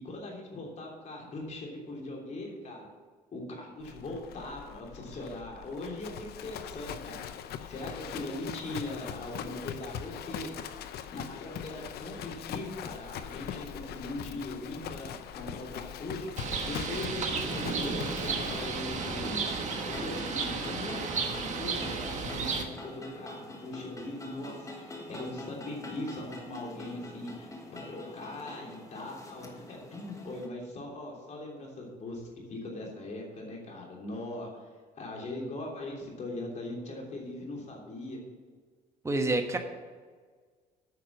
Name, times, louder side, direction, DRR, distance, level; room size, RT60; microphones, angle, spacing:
voice 1, 0.0-2.9 3.3-7.3 7.7-10.5 11.1-34.7 35.0-38.2, left 2 dB, 45° left, -1 dB, 3.3 m, -40 dB
Livestock farm animals working animals, 3.8-19.4, left 9 dB, 70° left, 0.7 m, -41 dB
Bird, 16.4-22.6, right 5 dB, 45° right, 1.4 m, -33 dB
sound 1, 17.4-30.5, left 1 dB, 20° left, 1.4 m, -45 dB
voice 2, 39.0-39.6, right 2 dB, 15° right, 5 dB, 1.3 m, -27 dB
9.5 x 6.0 x 7.3 m, 1.5 s
cardioid pair, 110°, 17 cm